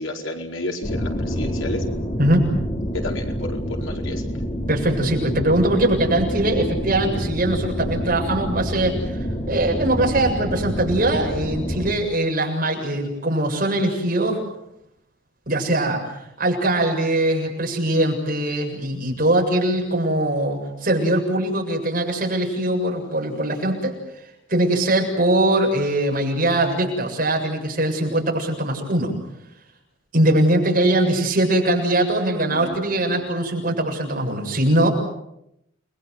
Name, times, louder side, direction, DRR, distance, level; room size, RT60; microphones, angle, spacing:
voice 1, 0.0-1.8 2.9-4.2 32.5-32.7 33.1-33.2, left 2 dB, 75° left, 2 dB, 4.8 m, -31 dB
sound 1, 0.8-11.9, equal, 35° left, 3.8 m, -27 dB
voice 2, 4.7-14.4 15.5-16.0 16.4-24.0 24.5-29.1 30.1-34.9, right 1 dB, 45° right, 1 dB, 7.4 m, -21 dB
30.0 x 22.5 x 8.1 m, 0.81 s
head